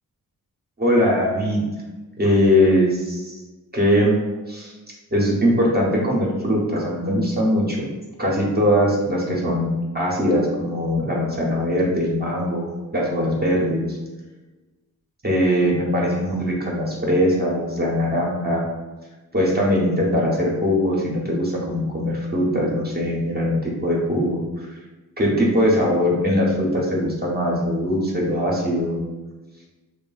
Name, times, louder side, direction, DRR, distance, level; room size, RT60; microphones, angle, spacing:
voice 1, 0.8-1.6 2.2-3.4 3.7-4.1 4.5-4.7 5.1-7.9 8.2-14.0 15.2-18.6 19.3-24.4 25.2-29.0, equal, 25° right, -3 dB, 0.5 m, -21 dB
3.1 x 2.1 x 2.3 m, 1.2 s
wide cardioid pair, 120°, 36 cm